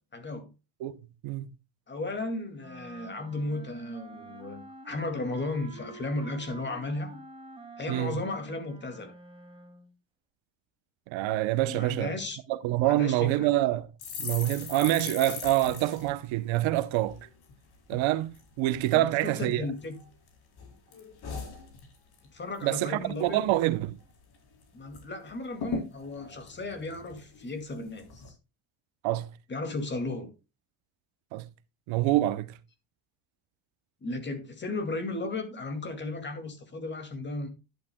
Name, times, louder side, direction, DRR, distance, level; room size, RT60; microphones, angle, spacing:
voice 1, 0.1-0.5 1.9-7.1 7.8-9.1 11.7-12.4 12.8-13.5 18.9-20.0 22.3-23.4 24.7-28.3 29.5-30.3 34.0-37.5, left 2 dB, 20° left, 2.2 m, -35 dB
sound 1, 2.6-9.9, right 2 dB, 10° right, 2.3 m, -48 dB
voice 2, 11.1-12.1 12.5-13.9 14.2-17.2 17.9-19.7 22.6-24.0 29.0-29.3 31.3-31.5 31.9-32.6, right 15 dB, 70° right, 0.9 m, -26 dB
sound 2, 14.0-17.5 17.9-18.1 18.3-19.0 19.5-20.3 20.6-22.3 22.6-22.8 23.0-23.6 24.0-24.1 24.3-25.0 25.3-25.4 25.6-27.5 28.0-28.3, left 5 dB, 50° left, 4.0 m, -40 dB
11.5 x 11.0 x 2.2 m
cardioid pair, 155°, 48 cm